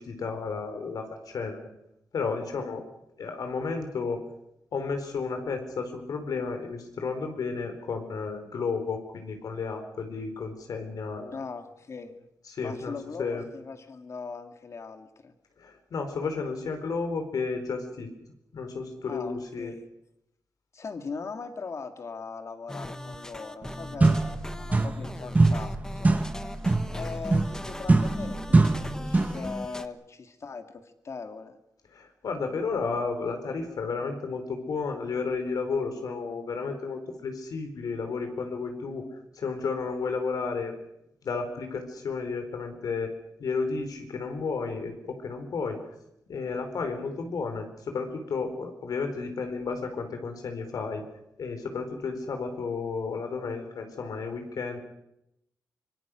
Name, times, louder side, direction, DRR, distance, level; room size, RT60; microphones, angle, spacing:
voice 1, 0.0-1.7 2.1-2.8 3.2-4.2 4.7-11.4 12.5-13.4 15.6-18.1 18.5-19.7 31.9-40.7 41.2-43.1 43.4-45.8 46.3-51.0 51.4-54.8, left 4 dB, 75° left, 6 dB, 4.4 m, -32 dB
voice 2, 11.3-12.3 12.6-15.3 19.1-19.8 20.7-26.2 26.9-31.6, left 4 dB, 50° left, 7 dB, 2.4 m, -40 dB
sound 1, 22.7-29.9, left 1 dB, 10° left, 1.1 m, -39 dB
sound 2, 23.6-23.7 24.0-25.1 25.4-29.5, right 3 dB, 25° right, 1.4 m, -23 dB
25.0 x 24.0 x 6.4 m, 0.83 s
wide cardioid pair, 130°, 6 cm